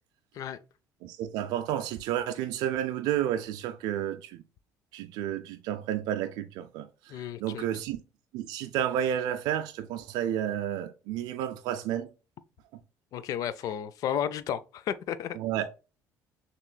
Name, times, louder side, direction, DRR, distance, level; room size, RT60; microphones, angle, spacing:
voice 1, 1.0-4.4 4.9-8.0 8.3-12.1 15.4-15.8, right 11 dB, 85° right, 0.4 m, -31 dB
voice 2, 7.1-7.6 13.1-15.4, left 9 dB, 60° left, 0.4 m, -33 dB
5.7 x 3.0 x 2.2 m
cardioid pair, 140°, 7 cm